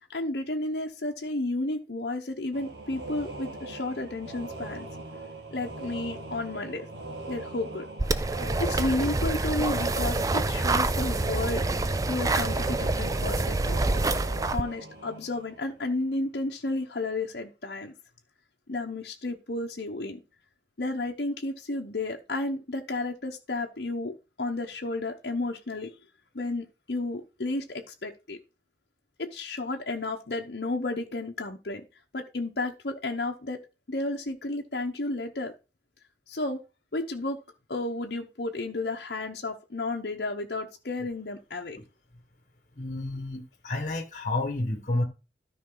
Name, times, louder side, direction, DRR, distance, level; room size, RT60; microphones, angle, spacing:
voice 1, 0.1-4.9 5.5-6.9 7.3-7.8 8.4-11.6 12.1-13.8 14.4-17.9 18.7-20.2 20.8-24.1 24.4-25.9 26.3-28.4 29.2-31.8 32.1-33.6 33.9-35.5 36.3-36.6 36.9-37.4 37.7-41.8, left 2 dB, 65° left, 0.9 m, -32 dB
sound 1, 2.5-16.0, right 2 dB, 75° right, 1.9 m, -41 dB
sound 2, 8.0-14.6, right 2 dB, 20° right, 0.4 m, -27 dB
voice 2, 42.7-45.0, left 2 dB, 45° left, 1.4 m, -30 dB
13.0 x 5.2 x 3.9 m
head